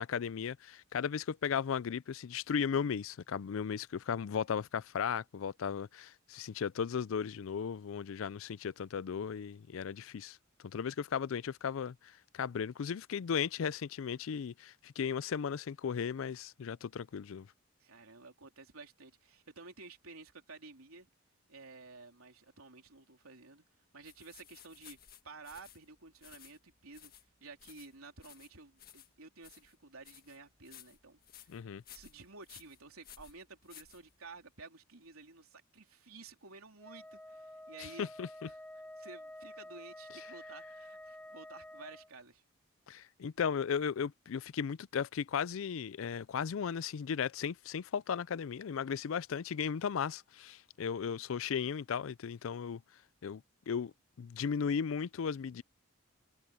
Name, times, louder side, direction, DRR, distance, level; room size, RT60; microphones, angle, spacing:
voice 1, 0.0-10.4 10.6-17.5 31.5-31.8 37.8-38.3 42.9-52.8 53.2-53.9 54.2-55.6, left 7 dB, 70° left, 0.4 m, -36 dB
voice 2, 17.8-21.1 21.5-23.6 23.9-25.0 25.2-27.1 27.4-31.5 31.9-38.1 38.4-38.5 39.0-42.4, right 3 dB, 90° right, 3.7 m, -53 dB
sound 1, 24.0-34.5, left 10 dB, 45° left, 1.7 m, -57 dB
Wind instrument woodwind instrument, 36.8-42.1, left 1 dB, 5° left, 0.8 m, -50 dB
head